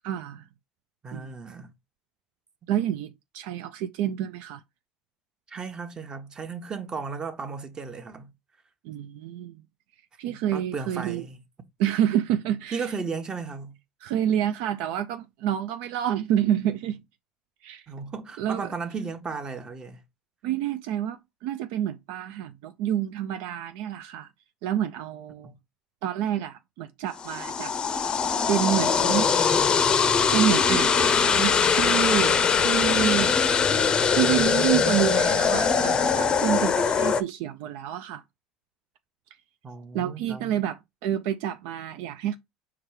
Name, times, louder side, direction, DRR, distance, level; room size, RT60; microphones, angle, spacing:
voice 1, 0.0-0.5 1.1-1.3 2.7-4.6 8.8-9.6 10.2-11.3 11.8-12.9 14.0-17.0 17.6-17.9 18.4-18.7 20.4-24.3 24.6-25.5 26.0-28.1 28.5-29.3 29.6-29.8 30.3-33.4 34.1-38.2 39.9-42.4, right 11 dB, 75° right, 0.3 m, -28 dB
voice 2, 1.0-1.7 2.6-2.7 5.5-8.3 10.3-11.4 12.7-13.7 17.9-20.0 25.4-25.6 39.6-40.6, right 5 dB, 30° right, 0.9 m, -35 dB
sound 1, 27.2-37.2, left 6 dB, 35° left, 0.5 m, -22 dB
4.6 x 2.3 x 4.7 m
supercardioid pair, 90°, 3 cm